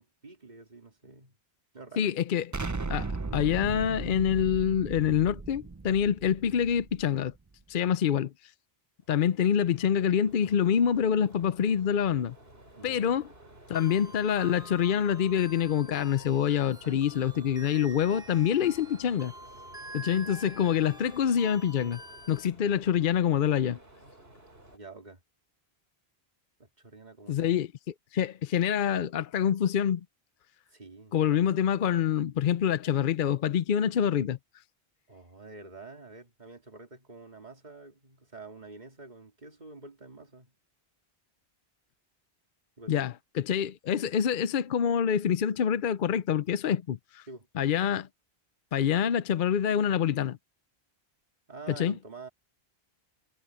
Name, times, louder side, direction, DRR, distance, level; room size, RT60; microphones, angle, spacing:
voice 1, 0.0-1.4 1.7-2.1 7.7-7.9 12.7-13.2 24.7-25.2 26.6-27.5 30.7-31.4 35.1-40.5 42.8-43.2 47.3-47.5 51.5-52.3, right 3 dB, 45° right, 2.8 m, -48 dB
voice 2, 2.0-2.5 2.9-7.3 7.7-8.3 9.1-12.4 12.8-13.3 13.7-19.3 19.9-22.0 22.3-23.8 27.3-27.7 28.1-30.0 31.1-34.4 42.9-47.2 47.6-48.1 48.7-50.4 51.8-51.9, left 8 dB, 60° left, 0.7 m, -26 dB
Explosion, 2.5-7.4, right 3 dB, 20° right, 0.5 m, -37 dB
sound 1, 9.0-24.8, right 1 dB, 70° right, 5.7 m, -53 dB
sound 2, 13.7-22.5, right 1 dB, 5° right, 1.2 m, -47 dB
omnidirectional pair, 1.1 m